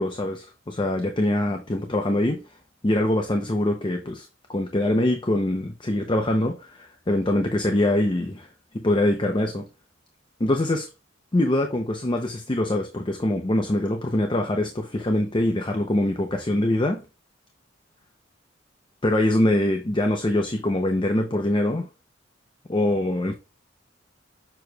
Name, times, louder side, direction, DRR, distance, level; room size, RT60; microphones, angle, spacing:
voice 1, 0.0-2.4 2.8-8.5 8.7-9.7 10.4-10.9 11.3-17.1 19.0-21.9 22.7-23.3, left 1 dB, 25° left, 0.6 m, -24 dB
6.8 x 6.0 x 2.3 m
head